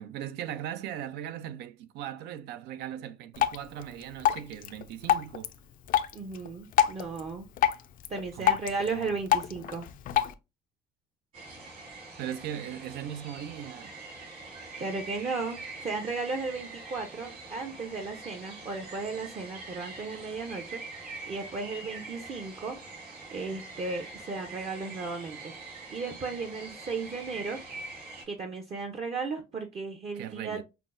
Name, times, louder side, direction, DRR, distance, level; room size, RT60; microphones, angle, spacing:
voice 1, 0.0-5.5 8.3-8.6 8.9-9.2 12.2-14.0 30.1-30.6, right 10 dB, 80° right, 0.5 m, -39 dB
Drip, 3.3-10.3, left 10 dB, 55° left, 0.4 m, -29 dB
voice 2, 6.1-7.5 8.1-9.9 14.7-20.8 21.3-22.8 23.3-25.5 25.9-27.6 28.3-30.6, right 4 dB, 35° right, 0.6 m, -35 dB
sound 1, 11.3-28.2, right 3 dB, 60° right, 2.4 m, -44 dB
5.8 x 2.0 x 2.5 m
cardioid pair, 110°, 17 cm